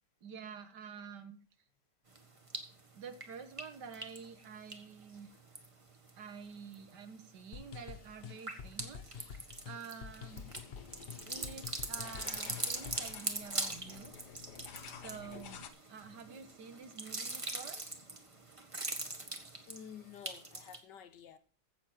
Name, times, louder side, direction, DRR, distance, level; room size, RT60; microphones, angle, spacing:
voice 1, 0.2-1.4 2.9-5.3 6.2-10.5 11.3-14.2 14.9-17.8, right 6 dB, 75° right, 1.9 m, -49 dB
sound 1, 2.2-2.8 3.1-6.1 6.5-7.0 7.4-20.8, right 2 dB, 20° right, 1.4 m, -42 dB
sound 2, 7.5-13.2, left 7 dB, 40° left, 1.0 m, -48 dB
sound 3, 10.3-15.7, left 7 dB, 70° left, 1.6 m, -51 dB
voice 2, 19.7-21.4, left 8 dB, 85° left, 1.7 m, -51 dB
15.0 x 7.0 x 4.5 m
omnidirectional pair, 1.8 m